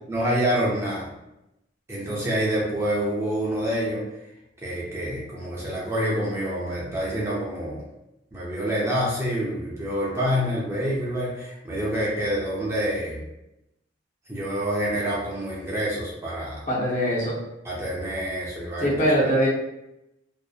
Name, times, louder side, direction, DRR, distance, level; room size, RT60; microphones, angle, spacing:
voice 1, 0.1-1.1 1.9-4.0 4.6-7.8 8.3-13.2 14.3-16.6 17.6-19.3, equal, 15° right, -6 dB, 0.5 m, -27 dB
voice 2, 16.7-17.4 18.8-19.5, equal, 40° left, -5 dB, 0.7 m, -22 dB
2.7 x 2.0 x 2.3 m, 0.88 s
head